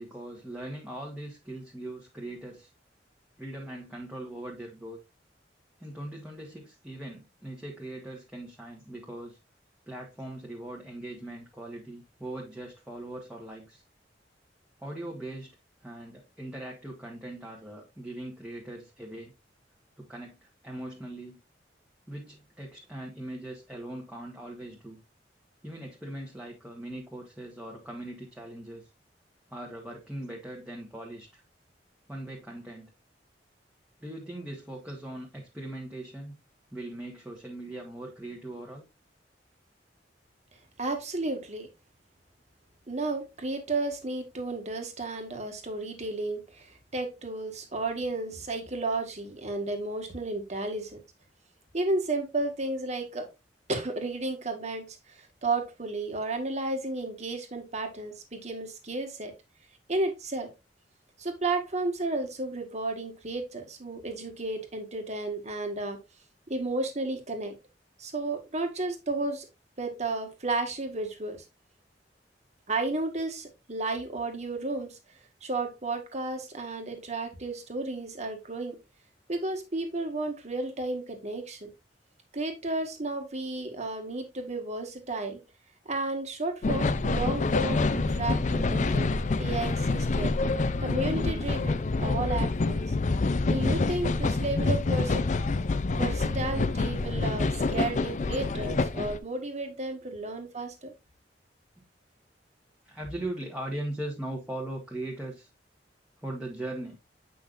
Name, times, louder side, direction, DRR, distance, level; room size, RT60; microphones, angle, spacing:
voice 1, 0.0-2.7 3.4-5.0 5.8-9.4 9.9-13.8 14.8-15.6 15.8-19.3 20.0-21.4 22.1-25.0 25.6-28.9 29.5-31.4 32.1-32.9 34.0-36.4 36.7-38.8 99.0-99.4 101.8-101.9 102.8-105.5 106.2-107.0, right 1 dB, 5° right, 1.5 m, -40 dB
voice 2, 40.8-41.7 42.9-51.0 51.7-53.3 53.7-59.3 59.9-60.5 61.2-66.0 66.5-67.5 68.0-69.5 69.8-71.4 72.7-75.0 75.4-78.8 79.3-81.7 82.3-85.4 85.8-89.1 89.4-90.3 90.8-92.8 93.4-95.2 95.9-100.9, right 2 dB, 40° right, 1.7 m, -33 dB
sound 1, 86.6-99.2, left 3 dB, 45° left, 0.5 m, -27 dB
8.4 x 5.6 x 2.5 m
head